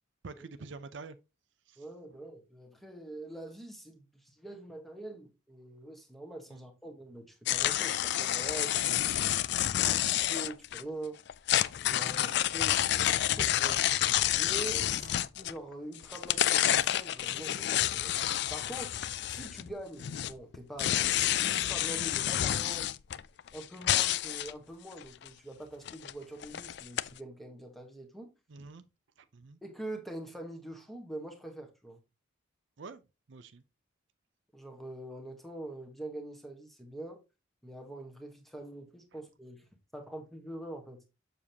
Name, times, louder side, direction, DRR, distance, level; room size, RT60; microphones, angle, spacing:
voice 1, 0.2-1.2 1.7-1.8 6.5-6.6 12.1-12.3 15.0-15.2 28.5-28.8 29.2-29.6 32.8-33.0 33.3-33.6 39.1-39.2, right 4 dB, 60° right, 0.5 m, -47 dB
voice 2, 1.8-9.1 9.7-11.2 11.9-13.8 14.3-18.1 18.5-19.0 19.3-22.9 23.5-28.3 29.6-32.0 34.5-37.2 37.6-39.7 39.9-41.0, right 1 dB, ahead, 1.3 m, -44 dB
sound 1, 7.5-10.8 11.3-15.7 16.0-19.7 20.0-24.5 25.0-25.3 25.9-26.1 26.4-27.1, left 12 dB, 55° left, 0.3 m, -29 dB
7.3 x 6.6 x 2.9 m
head